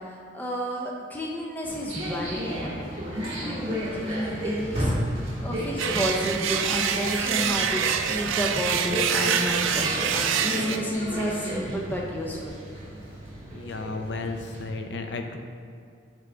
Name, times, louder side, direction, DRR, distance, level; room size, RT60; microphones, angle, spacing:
voice 1, 0.0-2.9 3.4-4.9 5.4-12.4, equal, 10° left, -2 dB, 0.5 m, -31 dB
sound 1, 1.6-14.6, equal, 30° right, 1.4 m, -33 dB
sound 2, 5.8-10.8, right 8 dB, 85° right, 0.4 m, -26 dB
voice 2, 13.5-15.4, left 3 dB, 65° left, 5 dB, 0.5 m, -33 dB
9.0 x 3.5 x 3.8 m, 2.3 s
head